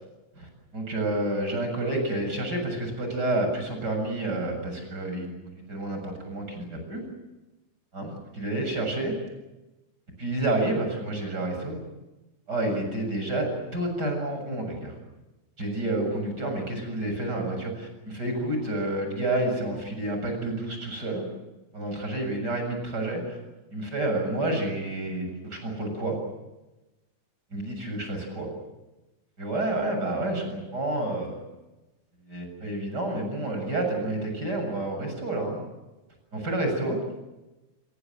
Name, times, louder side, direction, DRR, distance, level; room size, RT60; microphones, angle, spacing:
voice 1, 0.3-7.0 7.9-9.1 10.2-11.8 12.5-15.0 15.6-21.2 21.7-23.4 23.7-26.2 27.5-28.5 29.4-31.4 32.3-35.6 36.3-37.0, right 2 dB, 30° right, 4 dB, 7.8 m, -29 dB
26.0 x 23.0 x 7.9 m, 1.0 s
omnidirectional pair, 3.5 m